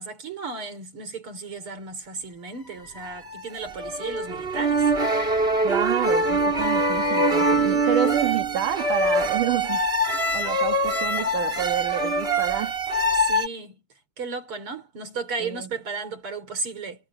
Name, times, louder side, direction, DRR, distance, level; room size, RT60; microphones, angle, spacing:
voice 1, 0.0-4.9 13.1-13.8 14.2-17.1, right 4 dB, 45° right, 5.3 m, -34 dB
sound 1, 3.0-13.5, right 1 dB, 20° right, 2.4 m, -23 dB
voice 2, 5.6-9.8 10.3-12.8 15.4-15.7, right 9 dB, 80° right, 3.6 m, -28 dB
omnidirectional pair, 3.6 m